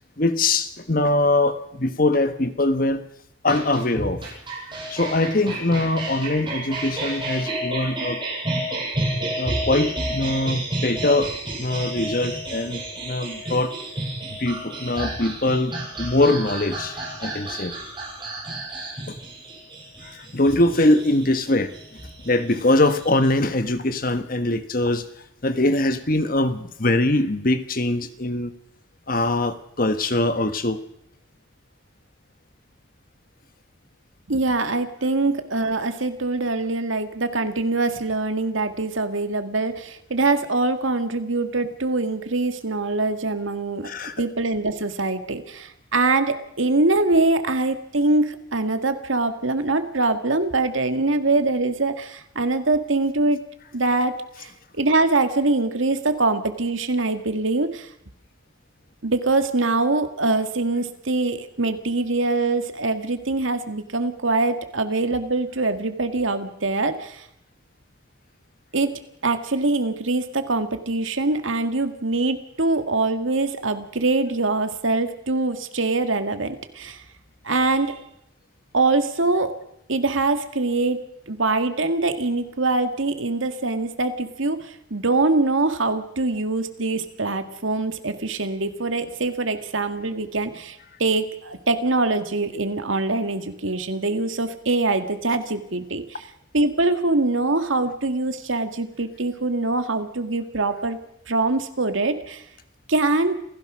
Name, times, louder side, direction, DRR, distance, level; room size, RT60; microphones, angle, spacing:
voice 1, 0.2-3.0 3.4-4.2 4.9-8.2 9.4-11.3 11.6-13.7 14.3-17.7 19.1-19.2 20.0-25.1 25.4-28.5 29.1-30.8 43.8-44.1, left 2 dB, 45° left, 10 dB, 1.4 m, -22 dB
sound 1, 3.5-23.3, right 1 dB, 25° right, 7.4 m, -31 dB
voice 2, 34.3-43.9 44.2-53.4 53.7-57.9 59.0-67.2 68.7-68.9 69.2-77.0 77.4-78.0 78.7-79.5 79.9-81.0 81.3-96.2 96.5-101.0 101.3-102.4 102.9-103.3, right 2 dB, 80° right, 8 dB, 2.0 m, -23 dB
27.5 x 16.0 x 6.3 m, 0.78 s
head